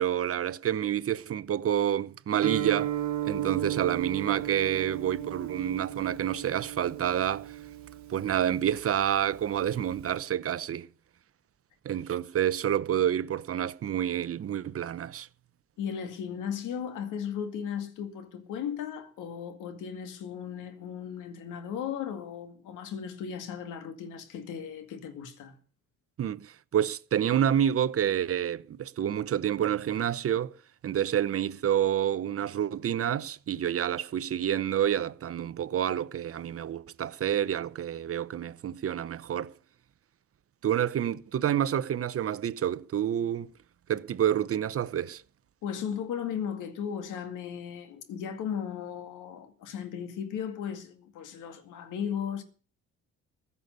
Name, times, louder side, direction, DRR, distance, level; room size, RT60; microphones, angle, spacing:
voice 1, 0.0-2.9 3.2-7.6 8.1-10.9 11.8-15.3 26.2-30.5 30.8-39.5 40.6-43.5 43.9-45.2, right 10 dB, 50° right, 0.8 m, -28 dB
Guitar, 2.4-10.2, right 12 dB, 65° right, 1.7 m, -35 dB
voice 2, 15.8-25.6 45.6-52.4, left 8 dB, 90° left, 2.2 m, -36 dB
15.5 x 6.9 x 9.4 m
cardioid pair, 90°, 30 cm